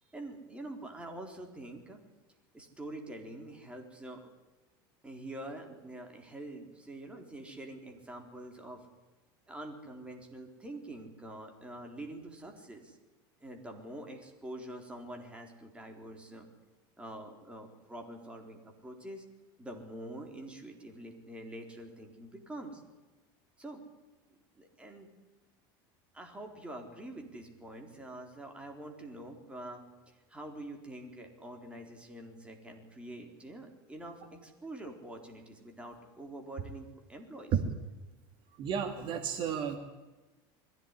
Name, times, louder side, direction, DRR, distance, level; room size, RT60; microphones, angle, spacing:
voice 1, 0.0-2.0 2.5-4.3 5.0-8.9 9.5-13.0 13.4-16.5 17.0-19.3 19.6-22.8 23.6-23.9 24.6-25.1 26.1-37.6, right 1 dB, 10° right, 3 dB, 4.0 m, -46 dB
voice 2, 38.6-39.8, right 8 dB, 45° right, 6 dB, 2.3 m, -32 dB
21.5 x 15.5 x 9.9 m, 1.2 s
supercardioid pair, 135°, 12 cm